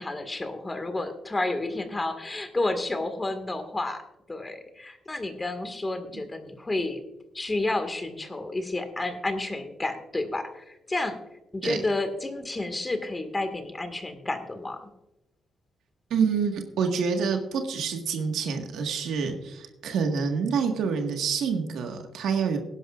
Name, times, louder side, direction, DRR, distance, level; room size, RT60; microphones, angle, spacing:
voice 1, 0.0-4.0 4.3-7.0 7.3-11.2 11.5-14.9, left 2 dB, 20° left, 8 dB, 1.9 m, -30 dB
voice 2, 16.1-22.6, right 6 dB, 85° right, 4 dB, 1.7 m, -27 dB
18.5 x 11.0 x 2.5 m, 0.94 s
cardioid pair, 80°, 0 cm